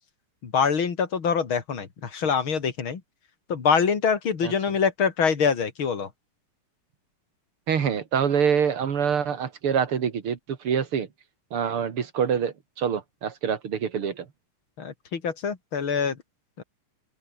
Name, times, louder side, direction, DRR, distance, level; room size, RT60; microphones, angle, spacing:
voice 1, 0.4-3.0 3.5-6.1 14.8-16.2 16.6-16.7, left 6 dB, 70° left, 3.2 m, -25 dB
voice 2, 7.7-11.1 11.5-14.3, right 7 dB, 90° right, 3.0 m, -25 dB
open air
omnidirectional pair, 2.3 m